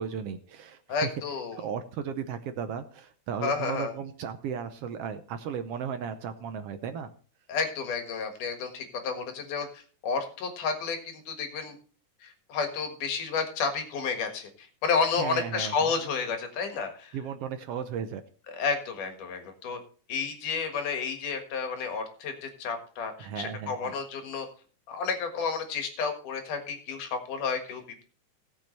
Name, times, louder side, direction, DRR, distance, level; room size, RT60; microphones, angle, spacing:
voice 1, 0.0-1.1 1.5-7.1 15.2-15.9 17.1-18.2 23.2-24.0, right 7 dB, 70° right, 9 dB, 1.4 m, -35 dB
voice 2, 0.9-1.6 3.4-3.9 7.5-11.8 12.2-17.1 18.5-19.8 20.1-24.5 24.9-28.0, left 5 dB, 85° left, 5 dB, 3.3 m, -31 dB
17.5 x 7.5 x 3.2 m, 0.40 s
omnidirectional pair, 3.5 m